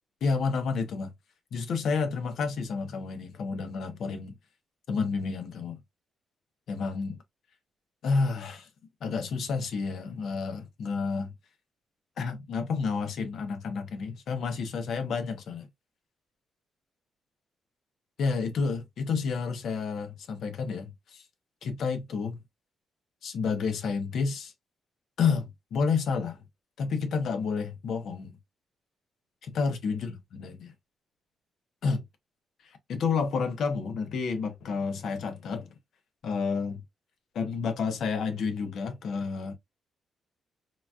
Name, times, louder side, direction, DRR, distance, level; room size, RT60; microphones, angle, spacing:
voice 1, 0.2-1.1 1.5-4.3 4.9-5.8 6.7-7.2 8.0-8.7 9.0-11.3 12.2-15.7 18.2-21.2 21.6-22.4 23.2-24.5 25.2-26.4 26.8-28.4 29.4-30.7 31.8-32.0 32.6-35.7 36.2-36.8 37.3-39.5, left 5 dB, 70° left, 0.7 m, -30 dB
3.8 x 2.3 x 2.3 m
cardioid pair, 90°, 0 cm